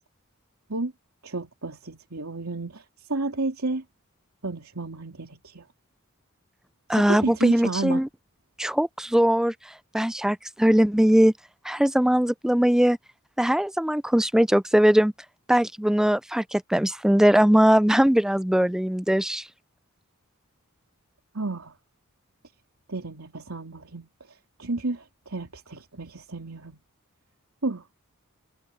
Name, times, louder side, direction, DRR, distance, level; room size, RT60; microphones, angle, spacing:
voice 1, 1.2-2.8 3.1-3.8 4.4-5.6 6.9-8.0 21.3-21.7 22.9-24.1 24.6-26.8 27.6-27.8, right 2 dB, 75° right, 3.3 m, -31 dB
voice 2, 6.9-8.1 8.6-9.5 9.9-11.3 11.6-13.0 13.4-15.1 15.5-19.5, equal, 5° right, 0.4 m, -20 dB
head